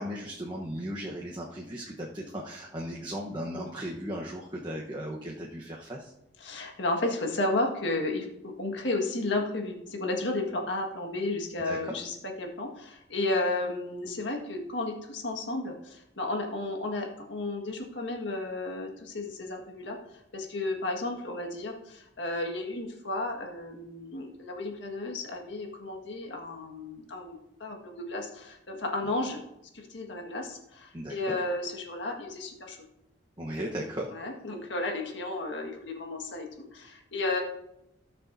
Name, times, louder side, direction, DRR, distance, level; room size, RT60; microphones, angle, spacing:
voice 1, 0.0-6.1 11.6-12.0 29.0-29.2 30.9-31.4 33.4-34.1, equal, 25° right, -2 dB, 1.1 m, -36 dB
voice 2, 6.4-20.0 20.3-29.4 29.7-32.8 34.1-36.5 36.7-37.4, left 2 dB, 75° left, 1 dB, 1.7 m, -33 dB
17.0 x 6.6 x 2.7 m, 0.83 s
head